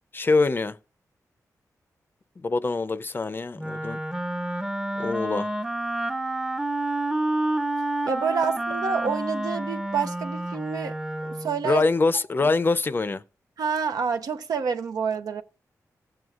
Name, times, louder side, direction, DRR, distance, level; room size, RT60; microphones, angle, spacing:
voice 1, 0.1-0.8 2.4-4.0 5.0-5.5 11.6-13.2, left 3 dB, 35° left, 0.5 m, -24 dB
Wind instrument woodwind instrument, 3.6-11.6, right 1 dB, 10° right, 0.6 m, -29 dB
voice 2, 8.1-11.0 11.3-11.8 12.4-12.5 13.6-15.4, right 6 dB, 85° right, 0.7 m, -28 dB
16.0 x 7.8 x 2.4 m
cardioid pair, 80°, 6 cm